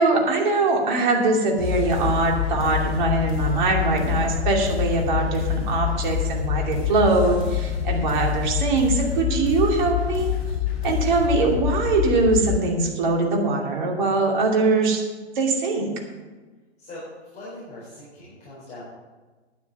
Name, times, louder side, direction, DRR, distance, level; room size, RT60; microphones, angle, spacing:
voice 1, 0.0-10.3 10.8-15.0 15.3-15.9, right 3 dB, 45° right, 0 dB, 2.6 m, -22 dB
sound 1, 1.6-12.6, left 11 dB, 45° left, 4.8 m, -26 dB
voice 2, 17.3-18.8, left 1 dB, 20° left, -8 dB, 3.9 m, -41 dB
9.5 x 9.5 x 6.6 m, 1.3 s
figure-of-eight pair, 115°, 34 cm